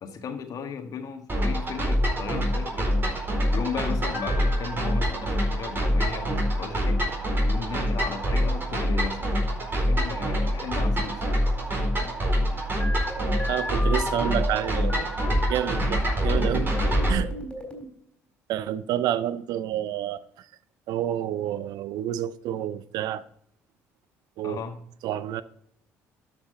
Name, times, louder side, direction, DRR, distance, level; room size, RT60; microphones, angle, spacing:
voice 1, 0.0-2.9 3.5-7.0 7.4-9.3 9.7-11.2 24.4-24.8, left 5 dB, 55° left, 1.6 m, -35 dB
sound 1, 1.3-17.2, equal, 30° right, 4.5 m, -25 dB
Piano, 4.1-6.2, left 3 dB, 90° left, 1.4 m, -44 dB
sound 2, 12.8-15.8 16.3-17.9, equal, 10° left, 3.8 m, -35 dB
voice 2, 13.5-16.7 17.1-17.3 18.5-20.5 20.9-23.2 24.4-24.6 25.0-25.4, right 11 dB, 65° right, 0.5 m, -29 dB
12.5 x 5.8 x 3.8 m
hypercardioid pair, 55°, 7 cm